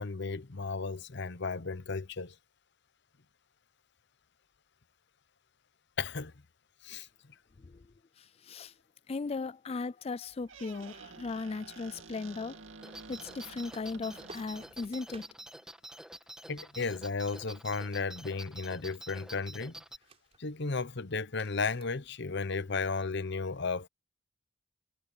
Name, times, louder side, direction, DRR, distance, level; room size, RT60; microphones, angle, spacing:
voice 1, 0.0-2.4 6.0-6.3 6.8-7.1 16.5-19.8 20.4-23.9, left 4 dB, 60° left, 0.9 m, -34 dB
voice 2, 9.1-12.6 13.1-15.3, left 4 dB, 30° left, 0.4 m, -37 dB
Squeak, 10.3-14.9, right 4 dB, 70° right, 2.6 m, -51 dB
sound 1, 12.8-20.0, right 1 dB, 5° right, 1.8 m, -48 dB
sound 2, 13.7-15.4 17.7-18.7 18.9-19.2 19.9-20.4 20.7-20.8 21.3-22.3, right 3 dB, 30° right, 4.8 m, -55 dB
head